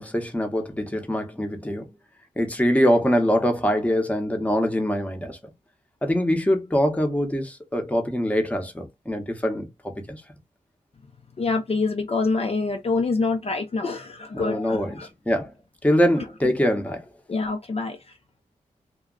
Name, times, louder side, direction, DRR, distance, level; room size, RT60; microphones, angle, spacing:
voice 1, 0.0-1.9 2.4-5.4 6.0-10.2 14.3-15.5 15.8-17.0, equal, 10° left, 0.8 m, -23 dB
voice 2, 11.4-15.1 17.3-18.0, left 3 dB, 45° left, 0.5 m, -26 dB
2.2 x 2.2 x 3.7 m
wide cardioid pair, 80°, 15 cm